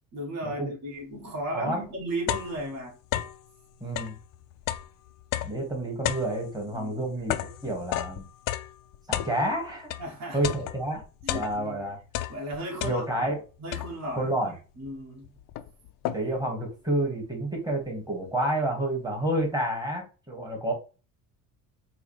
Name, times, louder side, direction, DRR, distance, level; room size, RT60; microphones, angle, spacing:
voice 1, 0.1-3.0 6.7-7.1 10.0-10.4 11.2-11.8 12.3-13.0 13.6-14.3 14.8-15.3, right 1 dB, 45° right, 1.5 m, -35 dB
sound 1, 1.4-1.5 1.8-3.5 3.8-10.1 10.4-11.8 12.1-13.3 13.7-14.2 14.9-15.0 15.2-16.5, left 13 dB, 60° left, 0.5 m, -33 dB
voice 2, 3.8-4.2 5.4-8.3 9.1-9.9 10.3-11.0 11.3-12.0 12.8-13.4 14.2-14.5 16.1-20.7, right 1 dB, 10° right, 1.5 m, -29 dB
4.8 x 2.2 x 3.1 m
cardioid pair, 125°, 37 cm